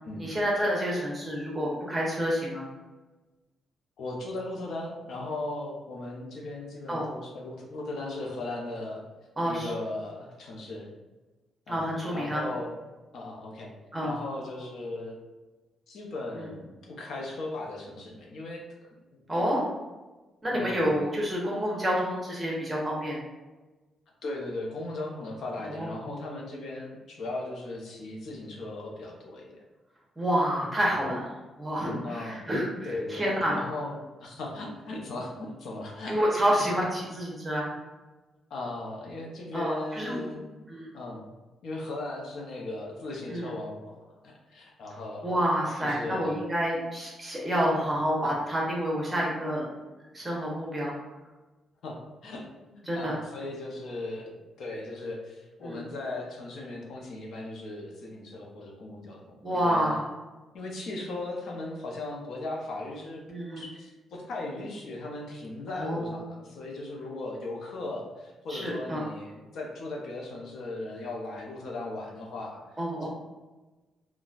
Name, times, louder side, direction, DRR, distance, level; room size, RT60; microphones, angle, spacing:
voice 1, 0.2-2.7 6.9-7.1 9.4-9.7 11.7-12.4 13.9-14.1 19.3-19.7 20.4-23.2 25.7-26.2 30.2-31.3 31.6-33.6 36.1-37.7 39.5-40.2 40.7-40.9 43.3-43.5 45.2-49.7 50.1-50.9 52.9-53.2 55.6-55.8 59.4-60.0 63.3-63.6 65.7-66.2 68.5-69.1 72.8-73.1, equal, 15° right, -3 dB, 0.9 m, -28 dB
voice 2, 4.0-9.0 9.5-10.9 11.7-11.8 12.1-12.7 13.1-13.7 14.0-15.2 15.9-18.6 20.5-20.8 24.2-29.6 30.8-31.0 32.0-32.5 32.8-36.2 38.5-40.7 40.9-41.3 41.6-45.4 45.8-46.3 51.8-59.2 59.6-60.0 60.5-73.1, left 2 dB, 65° left, -1 dB, 0.6 m, -37 dB
4.0 x 2.2 x 2.4 m, 1.2 s
cardioid pair, 135°, 0 cm